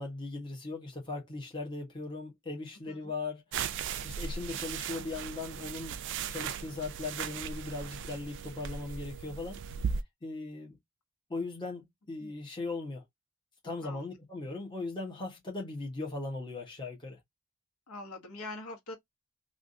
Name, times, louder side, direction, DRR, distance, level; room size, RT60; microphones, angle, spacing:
voice 1, 0.0-3.4 4.0-6.0 6.3-9.6 10.2-10.8 11.3-13.0 13.6-17.2, left 3 dB, 20° left, 1.1 m, -38 dB
sound 1, 3.5-10.0, right 6 dB, 55° right, 0.3 m, -37 dB
voice 2, 13.8-14.2 17.9-18.9, left 2 dB, 90° left, 1.0 m, -44 dB
3.5 x 2.4 x 2.6 m
head